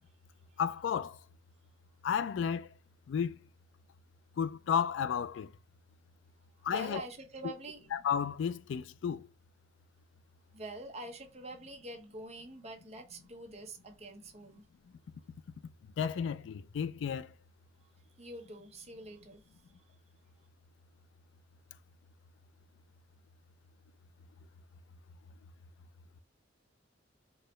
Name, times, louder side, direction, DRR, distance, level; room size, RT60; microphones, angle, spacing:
voice 1, 0.6-1.2 2.0-2.7 3.1-3.4 4.4-5.5 6.6-7.0 7.9-9.3 16.0-17.3, left 7 dB, 70° left, 0.3 m, -32 dB
voice 2, 6.7-7.9 10.5-14.6 18.2-19.4, right 2 dB, 35° right, 0.8 m, -45 dB
4.5 x 2.1 x 3.0 m
head